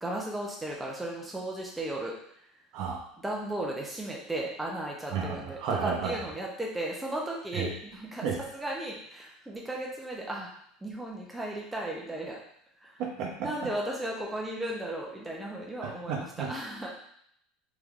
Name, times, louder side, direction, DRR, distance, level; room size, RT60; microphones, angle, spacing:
voice 1, 0.0-2.1 3.2-8.3 8.5-10.5 10.8-12.4 12.8-13.0 13.4-16.9, right 1 dB, 5° right, -3 dB, 0.5 m, -35 dB
voice 2, 2.7-3.0 5.1-6.2 7.5-7.7 8.2-8.3 13.0-13.5 15.8-16.5, right 6 dB, 55° right, 1 dB, 0.7 m, -32 dB
3.6 x 2.8 x 2.4 m, 0.69 s
supercardioid pair, 150°, 0 cm